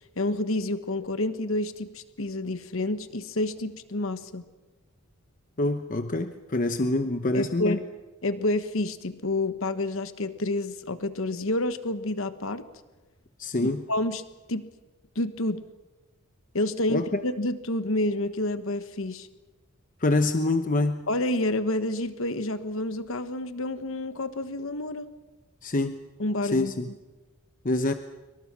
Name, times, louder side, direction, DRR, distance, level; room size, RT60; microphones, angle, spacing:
voice 1, 0.2-4.4 7.3-7.8 8.2-12.7 13.6-14.2 14.5-14.7 15.1-15.6 16.5-19.3 21.1-25.1 26.2-26.7, left 1 dB, 60° left, 11 dB, 1.2 m, -29 dB
voice 2, 5.6-7.8 13.4-13.8 16.9-17.2 20.0-21.0 25.6-26.0 26.4-26.9 27.6-27.9, left 2 dB, 35° left, 8 dB, 0.9 m, -26 dB
26.5 x 24.5 x 6.1 m, 1.2 s
head